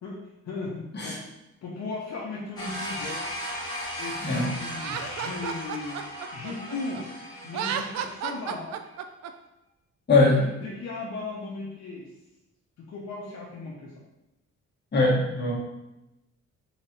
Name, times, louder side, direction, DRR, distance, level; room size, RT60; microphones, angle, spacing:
voice 1, 0.0-1.2 1.6-3.2 4.0-6.1 6.3-7.1 7.4-8.7 10.3-12.1 12.9-13.9, left 3 dB, 65° left, -3 dB, 0.9 m, -36 dB
sound 1, 2.6-8.5, equal, 15° left, 1.6 m, -37 dB
Laughter, 4.8-7.0 7.5-9.3, right 8 dB, 60° right, 0.4 m, -33 dB
voice 2, 10.1-10.4 14.9-15.5, left 3 dB, 35° left, -3 dB, 1.5 m, -21 dB
3.9 x 2.9 x 4.4 m, 0.93 s
cardioid pair, 90°, 30 cm